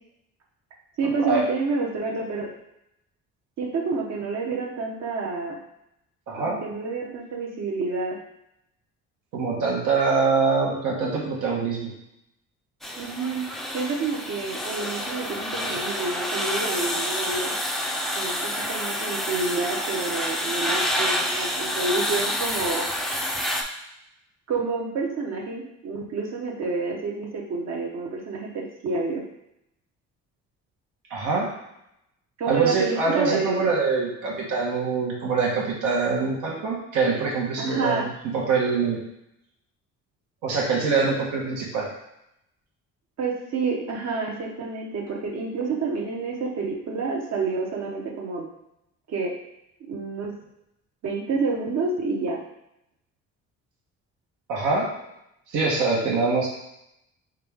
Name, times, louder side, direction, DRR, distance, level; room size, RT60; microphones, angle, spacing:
voice 1, 1.0-2.5 3.6-5.6 6.4-8.2 13.0-13.4 13.7-17.5 18.1-22.9 24.5-29.2 32.4-33.7 37.6-38.0 43.2-48.5 49.1-49.3 49.9-50.3 51.0-52.4, right 4 dB, 55° right, -1 dB, 1.1 m, -28 dB
voice 2, 6.3-6.6 9.3-11.9 31.1-31.5 32.5-39.0 40.4-41.9 54.5-54.9 55.5-56.5, right 4 dB, 80° right, -3 dB, 1.3 m, -24 dB
sound 1, 12.8-23.6, equal, ahead, 0.5 m, -28 dB
3.7 x 3.5 x 3.5 m, 0.82 s
cardioid pair, 100°, 31 cm